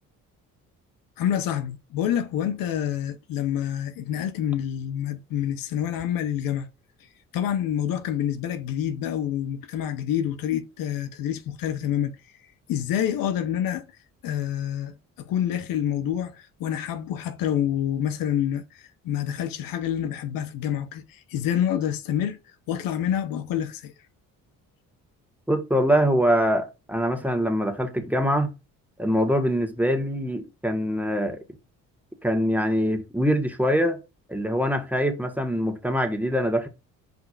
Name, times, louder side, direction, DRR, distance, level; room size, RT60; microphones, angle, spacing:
voice 1, 1.2-6.7 7.3-12.2 12.7-13.9 14.2-22.4 22.7-23.9, left 10 dB, 80° left, 0.8 m, -27 dB
voice 2, 25.5-28.5 29.0-31.4 32.2-34.0 34.3-36.7, equal, 5° right, 1.5 m, -23 dB
7.9 x 5.2 x 2.5 m
supercardioid pair, 70°, 34 cm